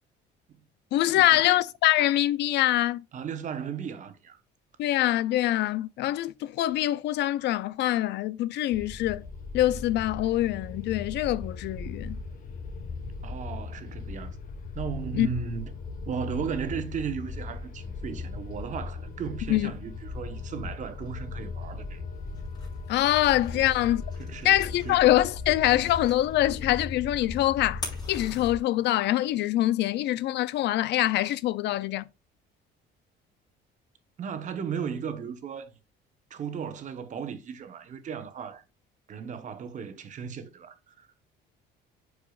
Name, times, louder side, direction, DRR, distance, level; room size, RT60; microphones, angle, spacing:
voice 1, 0.9-3.0 4.8-9.2 9.5-12.2 15.1-15.3 19.5-19.7 22.9-24.0 24.4-27.8 28.1-32.1, left 14 dB, 65° left, 0.4 m, -24 dB
voice 2, 3.1-4.4 13.2-14.4 14.7-15.7 16.1-22.0 23.5-23.7 24.2-25.0 34.2-35.7 36.3-38.6 39.1-41.1, right 7 dB, 40° right, 1.0 m, -36 dB
sound 1, 8.7-28.6, left 4 dB, 45° left, 1.2 m, -38 dB
sound 2, 22.2-29.1, left 2 dB, 20° left, 4.3 m, -46 dB
9.8 x 4.8 x 2.4 m
cardioid pair, 150°, 20 cm